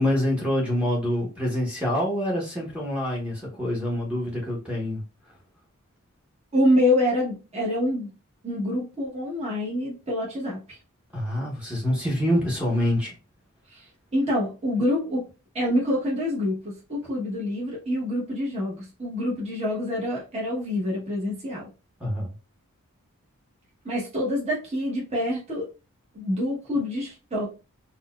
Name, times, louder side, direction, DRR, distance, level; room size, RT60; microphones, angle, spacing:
voice 1, 0.0-5.4 11.1-13.2 22.0-22.3, left 1 dB, 5° right, -5 dB, 0.8 m, -26 dB
voice 2, 6.5-8.1 8.4-10.8 13.7-15.2 15.5-21.7 23.8-25.7 26.1-27.5, left 1 dB, 30° right, -4 dB, 1.0 m, -26 dB
3.9 x 2.2 x 2.2 m, 0.30 s
head